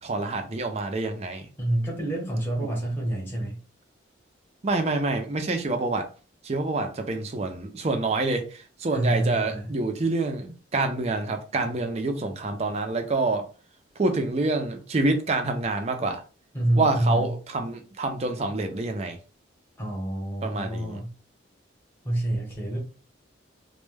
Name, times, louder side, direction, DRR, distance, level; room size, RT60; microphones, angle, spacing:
voice 1, 0.0-1.5 2.6-2.7 4.6-6.1 6.4-13.5 14.0-16.2 16.7-19.2 20.4-21.0, right 2 dB, 35° right, 0.4 m, -27 dB
voice 2, 1.6-3.6 8.9-9.7 16.5-17.3 19.8-21.1 22.0-22.8, right 1 dB, 10° left, 0.8 m, -27 dB
2.1 x 2.1 x 3.2 m
head